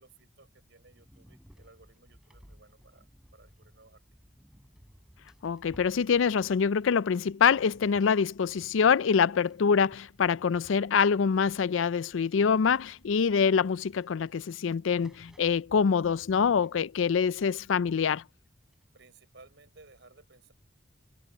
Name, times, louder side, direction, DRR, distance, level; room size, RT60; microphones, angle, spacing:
voice 1, 0.0-3.1 3.3-4.0 18.9-20.5, right 3 dB, 65° right, 7.2 m, -58 dB
sound 1, 0.8-18.9, equal, 5° right, 7.5 m, -59 dB
voice 2, 5.4-18.2, left 6 dB, 90° left, 0.4 m, -25 dB
head